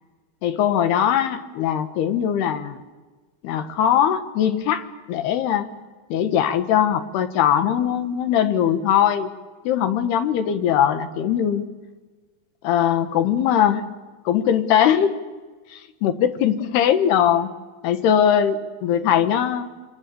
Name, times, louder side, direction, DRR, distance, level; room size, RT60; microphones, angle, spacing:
voice 1, 0.4-2.8 3.4-5.7 6.1-9.3 9.6-11.7 12.6-13.8 14.3-15.2 15.7-17.5 17.8-19.7, left 9 dB, 75° left, 9 dB, 3.2 m, -20 dB
28.5 x 26.5 x 6.8 m, 1.3 s
omnidirectional pair, 4.9 m